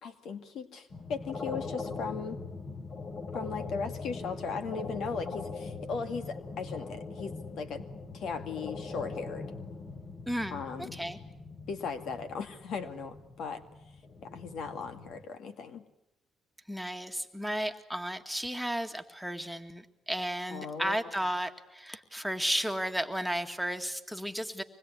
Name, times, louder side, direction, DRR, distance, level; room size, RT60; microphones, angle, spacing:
voice 1, 0.0-2.4 3.3-7.8 8.1-9.5 10.5-11.0 11.7-13.6 14.2-15.8 20.5-21.0, left 5 dB, 75° left, 8 dB, 2.3 m, -37 dB
sound 1, 0.9-15.2, left 4 dB, 50° left, 3.7 m, -41 dB
voice 2, 10.3-11.2 16.7-24.6, equal, ahead, 5 dB, 2.0 m, -34 dB
25.0 x 20.5 x 9.7 m, 0.83 s
cardioid pair, 90°, 0 cm